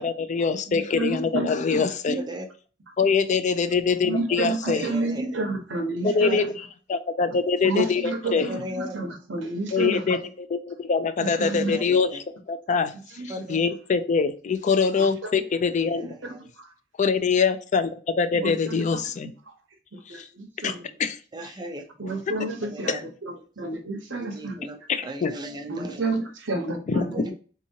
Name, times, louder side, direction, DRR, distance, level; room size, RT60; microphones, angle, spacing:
voice 1, 0.0-2.2 3.0-4.9 6.0-8.5 9.7-16.1 17.0-19.3 20.1-20.3 20.6-20.7 21.0-21.5 22.4-22.5 22.9-23.0 24.9-25.4 26.9-27.2, left 5 dB, 40° left, 11 dB, 0.4 m, -24 dB
voice 2, 0.7-1.6 2.1-2.2 4.0-6.4 7.6-8.6 8.9-10.0 11.4-11.8 13.2-13.4 15.2-15.4 18.4-18.8 20.1-20.8 22.0-22.9 23.2-24.6 25.7-27.3, right 2 dB, 75° right, 4 dB, 0.9 m, -30 dB
voice 3, 4.5-5.3 6.1-6.4 8.3-9.0 11.7-12.2 13.3-13.6 15.9-16.2 21.3-21.8 22.1-22.2 22.6-23.0 24.3-26.0 27.0-27.3, equal, 20° right, 4 dB, 0.6 m, -36 dB
3.6 x 2.9 x 2.7 m, 0.39 s
head